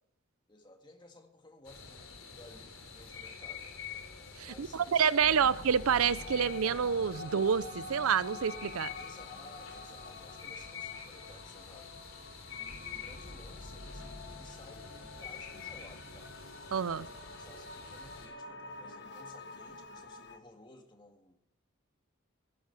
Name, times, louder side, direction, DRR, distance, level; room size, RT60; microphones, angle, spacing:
voice 1, 0.5-3.7 4.4-5.5 9.0-12.0 12.5-16.3 16.9-21.3, left 2 dB, 20° left, 1.9 m, -56 dB
sound 1, 1.6-18.3, left 6 dB, 70° left, 3.3 m, -47 dB
voice 2, 4.4-8.9 16.7-17.1, right 7 dB, 85° right, 0.5 m, -28 dB
sound 2, 5.2-20.4, left 2 dB, 55° left, 1.4 m, -47 dB
17.5 x 10.5 x 6.9 m
head